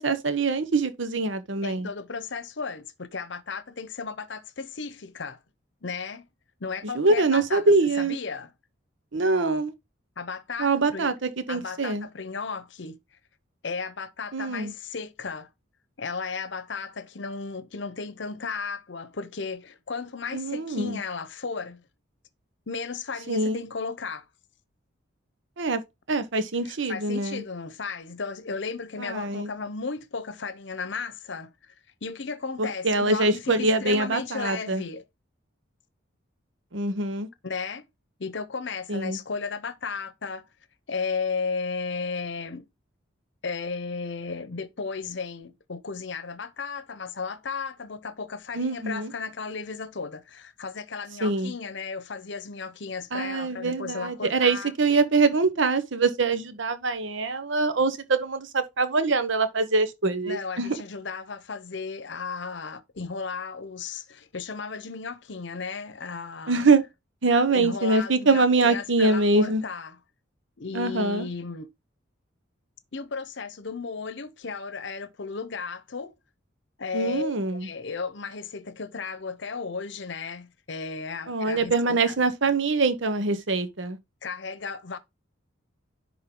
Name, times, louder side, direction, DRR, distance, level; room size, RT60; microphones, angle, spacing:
voice 1, 0.0-1.9 6.8-8.2 9.1-9.7 10.6-12.1 14.3-14.7 20.3-21.0 23.3-23.6 25.6-25.8 26.1-27.4 29.0-29.5 32.6-34.8 36.7-37.3 38.9-39.2 48.5-49.1 51.2-51.5 53.1-60.8 66.5-66.8 67.2-69.6 70.7-71.3 76.9-77.7 81.3-84.0, right 3 dB, 70° right, 0.9 m, -24 dB
voice 2, 1.6-5.4 5.8-6.3 6.6-7.6 8.0-8.5 10.2-11.1 11.5-13.0 13.6-15.5 16.0-21.8 22.7-24.2 26.7-31.5 32.0-35.0 37.4-37.9 38.2-40.4 40.9-42.7 43.4-54.7 60.3-66.7 67.5-69.9 70.6-71.7 72.9-76.1 76.8-81.7 82.1-82.2 84.2-85.0, left 5 dB, 65° left, 0.8 m, -34 dB
10.5 x 3.7 x 3.7 m
head